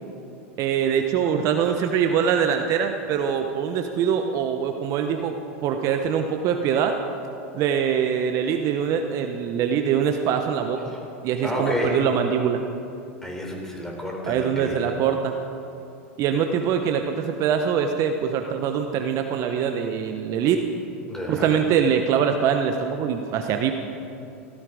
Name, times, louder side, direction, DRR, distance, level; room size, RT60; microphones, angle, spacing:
voice 1, 0.6-5.4 5.6-7.0 7.5-10.8 11.2-12.6 14.3-15.4 16.2-20.6 21.3-23.7, right 7 dB, 45° right, 5 dB, 1.0 m, -23 dB
voice 2, 11.4-12.0 13.2-14.8 21.1-21.5, left 1 dB, 5° left, -1 dB, 3.9 m, -30 dB
16.5 x 14.0 x 5.0 m, 2.7 s
hypercardioid pair, 100°, 7 cm